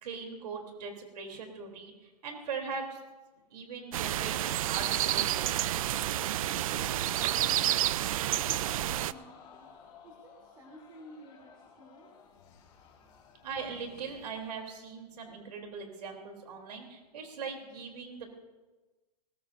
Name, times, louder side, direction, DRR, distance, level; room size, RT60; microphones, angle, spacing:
voice 1, 0.0-3.0 3.5-5.5 13.4-18.3, right 5 dB, 75° right, 3 dB, 3.2 m, -40 dB
sound 1, 3.9-9.1, right 13 dB, 55° right, 0.4 m, -29 dB
voice 2, 6.4-9.7 10.0-12.1, equal, 20° right, -3 dB, 3.0 m, -52 dB
sound 2, 6.6-9.2 9.4-10.3 12.3-14.8, left 6 dB, 45° left, 2.6 m, -58 dB
Crowd, 8.3-13.8 14.2-14.3, left 7 dB, 25° left, 2.7 m, -56 dB
20.0 x 20.0 x 2.6 m, 1.2 s
hypercardioid pair, 150°, 21 cm